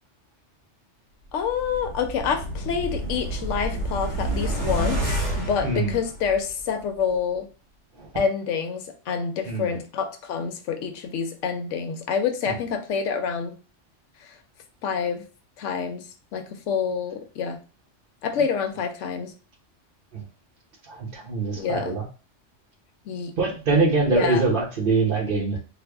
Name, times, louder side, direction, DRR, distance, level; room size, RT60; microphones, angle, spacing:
voice 1, 1.3-7.5 8.2-13.6 14.2-14.4 14.8-15.2 15.6-17.6 18.2-19.3 21.6-22.0 23.1-23.3 24.1-24.4, left 6 dB, 80° left, 7 dB, 0.9 m, -27 dB
sound 1, 1.4-6.6 7.0-7.1, right 1 dB, 75° right, 1.2 m, -29 dB
voice 2, 5.6-6.0 8.0-8.1 9.5-9.8 12.5-12.6 20.1-20.2 20.9-22.1 23.4-25.6, right 3 dB, 50° right, -1 dB, 1.1 m, -24 dB
3.4 x 2.1 x 3.4 m, 0.34 s
omnidirectional pair, 1.2 m